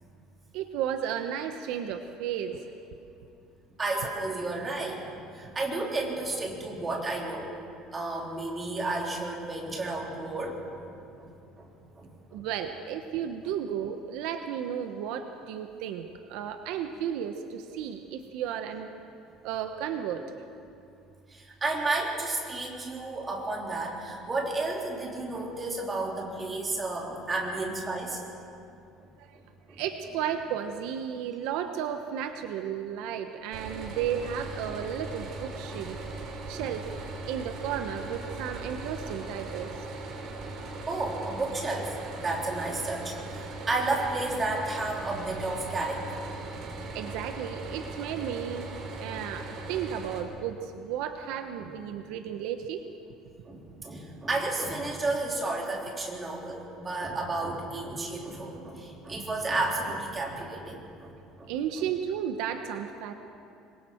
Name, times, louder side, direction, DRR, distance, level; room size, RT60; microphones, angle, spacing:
voice 1, 0.5-2.7 12.3-18.9 19.4-20.2 29.2-29.3 29.7-36.0 36.5-36.9 37.3-39.7 46.9-48.7 49.0-52.8 61.5-63.1, right 9 dB, 75° right, 7 dB, 1.0 m, -33 dB
voice 2, 3.8-7.5 7.9-10.9 11.2-11.7 12.0-12.4 21.3-28.2 29.7-29.8 33.8-33.9 35.7-35.8 36.5-36.7 40.9-41.9 42.2-46.2 51.6-51.7 53.4-61.5, right 2 dB, 15° right, -2 dB, 3.2 m, -32 dB
sound 1, 33.5-50.2, right 2 dB, 50° right, 3.1 m, -39 dB
26.0 x 22.0 x 4.5 m, 2.6 s
cardioid pair, 165°, 0 cm